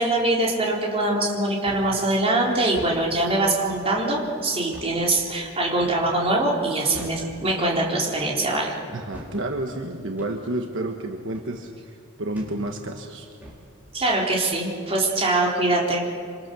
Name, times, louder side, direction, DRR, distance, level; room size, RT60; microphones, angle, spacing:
voice 1, 0.0-8.8 13.9-16.0, right 2 dB, 25° right, -2 dB, 4.1 m, -23 dB
sound 1, 1.6-1.9 2.6-3.0 3.7-3.9 4.7-5.0 5.8-6.1 6.9-7.3 8.1-8.4 9.1-9.4 10.2-10.4 11.3-11.5 12.3-12.6 13.4-13.6, equal, 10° right, 5.1 m, -42 dB
voice 2, 8.9-13.3, right 1 dB, 55° right, 4 dB, 1.4 m, -30 dB
27.0 x 26.5 x 7.1 m, 2.4 s
head